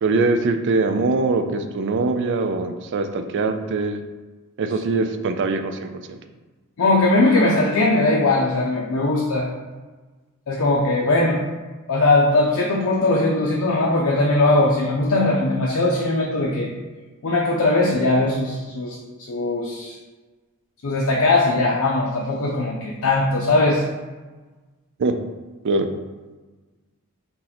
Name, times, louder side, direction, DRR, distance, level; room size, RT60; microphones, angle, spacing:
voice 1, 0.0-4.0 4.6-5.9 25.0-25.1 25.6-25.9, right 3 dB, 55° right, 7 dB, 0.4 m, -22 dB
voice 2, 6.8-9.5 10.5-11.4 11.9-16.7 17.2-19.0 19.3-20.0 20.8-23.8, left 2 dB, 65° left, -3 dB, 0.5 m, -19 dB
3.7 x 2.9 x 4.0 m, 1.3 s
head